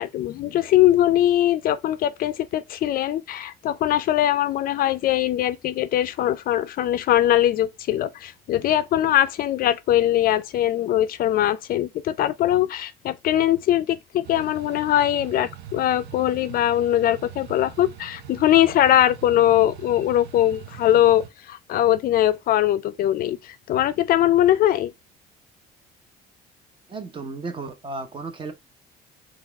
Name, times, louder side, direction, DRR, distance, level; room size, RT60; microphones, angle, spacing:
voice 1, 0.0-24.9, left 12 dB, 60° left, 0.4 m, -21 dB
sound 1, 14.2-21.3, right 9 dB, 85° right, 0.5 m, -42 dB
voice 2, 26.9-28.5, right 3 dB, 30° right, 0.8 m, -34 dB
4.0 x 2.4 x 3.3 m
cardioid pair, 110°, 17 cm